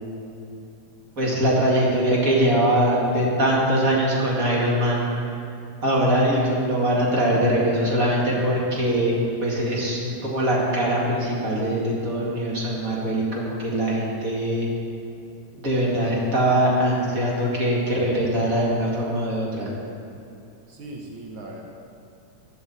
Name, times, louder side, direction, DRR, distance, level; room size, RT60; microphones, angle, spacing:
voice 1, 1.2-5.1 5.8-14.7 15.5-19.7, right 1 dB, 25° right, -4 dB, 2.4 m, -22 dB
voice 2, 2.8-3.2 20.7-21.6, right 2 dB, 80° right, 0 dB, 1.1 m, -39 dB
15.5 x 12.5 x 4.3 m, 2.6 s
omnidirectional pair, 3.9 m